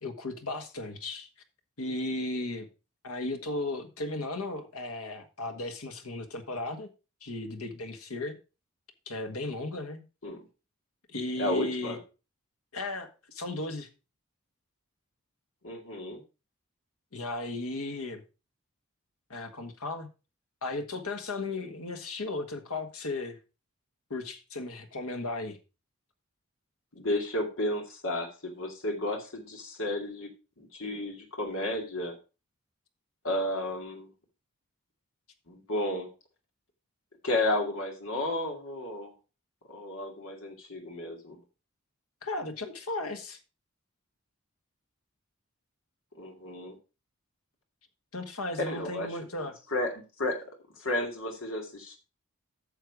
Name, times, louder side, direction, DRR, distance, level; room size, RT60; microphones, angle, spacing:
voice 1, 0.0-1.3 1.8-2.7 3.0-6.9 7.2-8.4 9.1-10.0 11.1-12.0 12.7-13.9 17.1-18.2 19.3-20.1 20.6-23.4 24.1-25.6 42.2-43.4 48.1-49.5, left 2 dB, 90° left, 1.6 m, -35 dB
voice 2, 11.4-12.0 15.6-16.2 26.9-30.3 30.6-32.2 33.2-34.1 35.5-36.1 37.2-39.1 39.7-41.4 46.2-46.8 48.6-49.1 49.7-52.0, left 1 dB, 70° left, 2.3 m, -32 dB
9.0 x 6.6 x 4.8 m
head